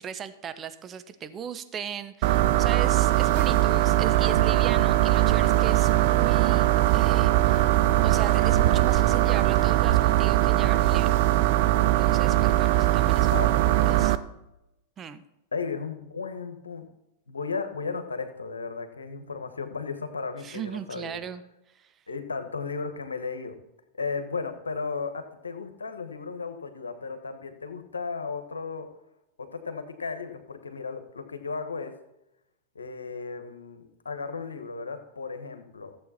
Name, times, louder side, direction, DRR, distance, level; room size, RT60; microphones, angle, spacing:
voice 1, 0.0-7.7 8.0-11.2 12.0-13.4 13.9-14.2 15.0-15.2 20.4-21.4 21.7-21.9, right 7 dB, 30° right, 11 dB, 0.9 m, -37 dB
sound 1, 2.2-14.2, right 15 dB, 55° right, 0.6 m, -21 dB
voice 2, 13.2-14.0 15.5-16.9 17.3-21.2 22.1-23.5 24.0-28.9 29.4-31.9 32.7-36.0, left 4 dB, 85° left, 8 dB, 1.2 m, -35 dB
14.5 x 7.7 x 4.3 m, 0.89 s
hypercardioid pair, 100°, 0 cm